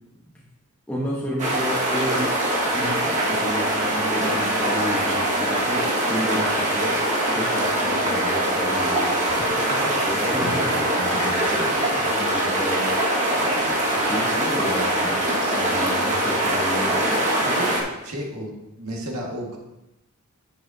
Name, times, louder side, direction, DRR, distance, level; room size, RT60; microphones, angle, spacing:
voice 1, 0.9-9.2 9.8-10.9 11.5-11.7 12.0-15.3 15.5-17.4, left 1 dB, 10° left, -5 dB, 1.1 m, -32 dB
sound 1, 1.4-17.8, right 1 dB, 35° right, 1.8 m, -23 dB
voice 2, 9.3-12.0 13.7-14.0 17.4-17.7 18.0-19.6, equal, 85° right, -1 dB, 1.8 m, -35 dB
9.8 x 7.6 x 2.8 m, 0.94 s
head